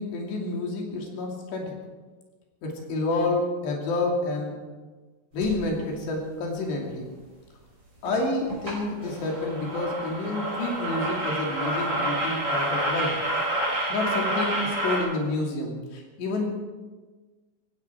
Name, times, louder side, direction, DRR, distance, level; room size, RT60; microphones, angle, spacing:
voice 1, 0.0-1.8 2.6-4.6 5.3-7.1 8.0-13.2 13.9-16.4, left 2 dB, 80° left, 0 dB, 4.9 m, -29 dB
sound 1, 5.4-5.6 8.1-8.2 8.5-8.7 9.0-15.0, right 1 dB, 25° right, 6.6 m, -28 dB
17.5 x 16.5 x 4.7 m, 1.3 s
omnidirectional pair, 4.9 m